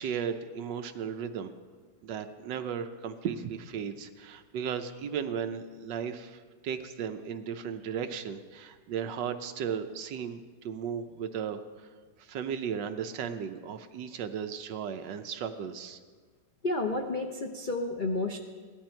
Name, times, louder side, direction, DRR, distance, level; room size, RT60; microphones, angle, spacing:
voice 1, 0.0-1.5 2.0-11.9 12.2-16.0, right 7 dB, 70° right, 8 dB, 1.3 m, -35 dB
voice 2, 16.6-18.4, left 2 dB, 75° left, 3 dB, 0.4 m, -31 dB
16.5 x 12.0 x 4.4 m, 1.5 s
omnidirectional pair, 2.1 m